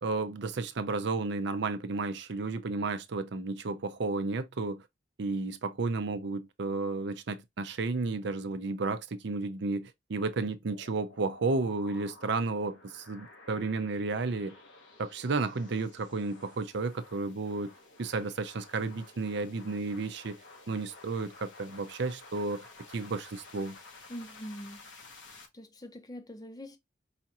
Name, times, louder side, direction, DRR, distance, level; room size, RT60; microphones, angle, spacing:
voice 1, 0.0-4.8 5.2-14.6 15.0-17.7 18.0-20.4 20.7-22.7 22.9-23.8, right 3 dB, 65° right, 0.6 m, -32 dB
sound 1, 10.7-25.5, left 3 dB, 90° left, 1.1 m, -53 dB
voice 2, 24.1-24.8 25.5-26.8, equal, 20° left, 0.6 m, -43 dB
5.0 x 2.4 x 2.8 m
head